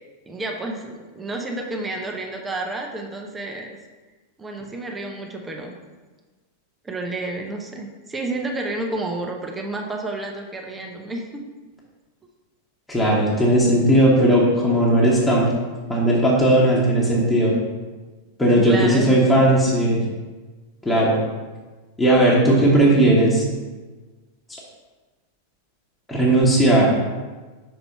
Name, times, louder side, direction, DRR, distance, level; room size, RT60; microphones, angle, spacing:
voice 1, 0.3-3.8 4.4-5.7 6.8-11.4 18.6-19.4, right 2 dB, 15° right, 2 dB, 0.8 m, -30 dB
voice 2, 12.9-15.5 15.9-17.5 18.4-20.0 20.8-21.2 22.0-23.4 26.1-27.0, right 1 dB, 10° left, -5 dB, 1.4 m, -17 dB
5.7 x 4.1 x 5.4 m, 1.3 s
figure-of-eight pair, 90°, 0 cm